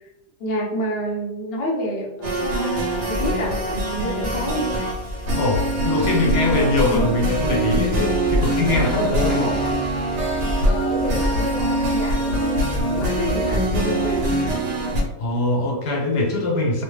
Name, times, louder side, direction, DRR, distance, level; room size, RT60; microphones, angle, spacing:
voice 1, 0.4-4.9 6.0-6.2 6.9-7.2 8.9-9.9 10.6-14.6, equal, 55° left, -2 dB, 0.6 m, -28 dB
sound 1, 2.2-15.0, right 1 dB, 80° right, 1.3 m, -23 dB
Bicycle, 2.8-14.5, equal, 15° right, 0.6 m, -32 dB
voice 2, 5.4-9.5 15.2-16.8, left 2 dB, 80° left, -1 dB, 1.3 m, -22 dB
3.0 x 2.1 x 3.1 m, 1.0 s
omnidirectional pair, 1.8 m